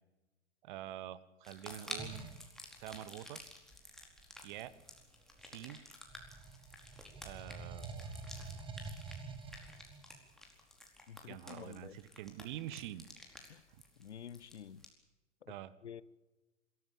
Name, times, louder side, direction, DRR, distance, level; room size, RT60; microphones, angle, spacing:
voice 1, 0.6-2.3 2.8-3.4 4.4-4.7 5.4-5.8 7.2-8.2 11.3-13.1 13.7-13.8 15.5-15.7, right 13 dB, 45° right, 1.4 m, -46 dB
sound 1, 1.4-14.9, left 1 dB, ahead, 4.5 m, -52 dB
sound 2, 2.0-2.5 3.8-5.7 6.1-10.2, right 4 dB, 15° right, 2.2 m, -48 dB
voice 2, 11.1-12.0 13.5-13.6 14.0-14.8 15.5-15.6 15.8-16.0, left 8 dB, 70° left, 1.0 m, -49 dB
26.5 x 14.5 x 8.8 m
figure-of-eight pair, 105°, 35 cm